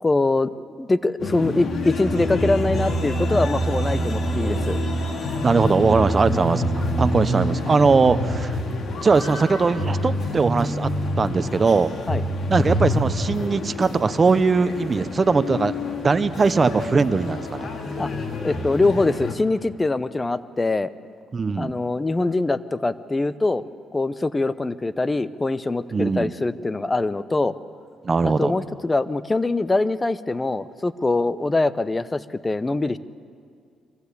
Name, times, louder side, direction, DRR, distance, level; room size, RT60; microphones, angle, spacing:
voice 1, 0.0-4.8 12.1-12.2 18.0-18.1 18.4-20.9 21.6-23.6 23.9-27.6 28.2-33.0, left 2 dB, 20° left, 15 dB, 0.7 m, -23 dB
sound 1, 1.2-19.3, left 1 dB, 50° left, 2.4 m, -27 dB
voice 2, 5.4-8.6 9.0-10.9 11.2-11.9 12.5-15.7 16.0-17.7 21.3-21.7 25.9-26.3 28.0-28.6, right 4 dB, 35° right, 12 dB, 0.9 m, -20 dB
23.5 x 15.0 x 8.4 m, 2.3 s
cardioid pair, 90°, 0 cm